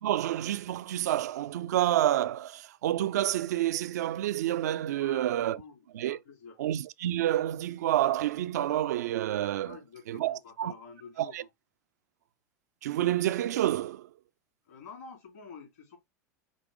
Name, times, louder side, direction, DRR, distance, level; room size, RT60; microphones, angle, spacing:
voice 1, 0.0-5.6 5.9-6.2 6.6-9.8 10.1-10.7 11.2-11.4 12.8-14.1, right 13 dB, 80° right, 0.3 m, -28 dB
voice 2, 5.5-6.6 9.6-11.5 14.6-16.0, left 5 dB, 75° left, 2.9 m, -48 dB
5.2 x 2.0 x 4.7 m
hypercardioid pair, 90°, 9 cm